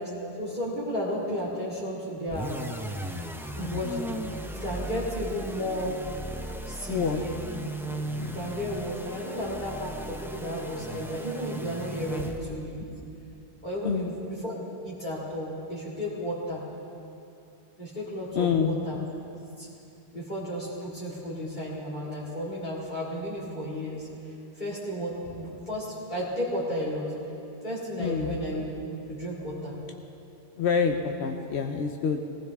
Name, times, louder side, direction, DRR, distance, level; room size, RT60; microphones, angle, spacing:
voice 1, 0.0-2.6 3.5-4.0 4.5-6.0 6.7-7.4 8.2-12.8 13.6-14.5 14.8-16.6 17.8-19.0 19.6-19.7 20.1-27.1 27.6-28.6 29.1-29.8, equal, 45° left, -7 dB, 2.4 m, -33 dB
sound 1, 2.3-12.7, right 1 dB, 5° right, 0.4 m, -37 dB
voice 2, 6.9-7.2 8.2-8.4 13.8-14.1 18.4-18.8 28.0-28.4 30.6-32.2, left 6 dB, 75° left, 4 dB, 1.0 m, -27 dB
19.0 x 16.0 x 3.5 m, 2.8 s
omnidirectional pair, 1.1 m